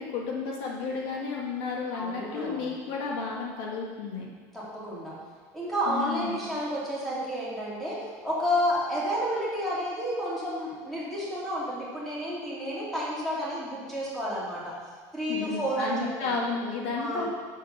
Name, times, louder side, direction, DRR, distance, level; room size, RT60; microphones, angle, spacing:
voice 1, 0.0-4.3 5.9-6.4 15.3-17.3, left 4 dB, 70° left, -2 dB, 2.0 m, -32 dB
voice 2, 1.9-2.7 4.5-5.1 5.5-8.0 8.2-14.7 15.1-16.3 17.0-17.3, equal, 5° left, -8 dB, 3.5 m, -30 dB
7.9 x 7.4 x 7.0 m, 1.5 s
cardioid pair, 150°, 8 cm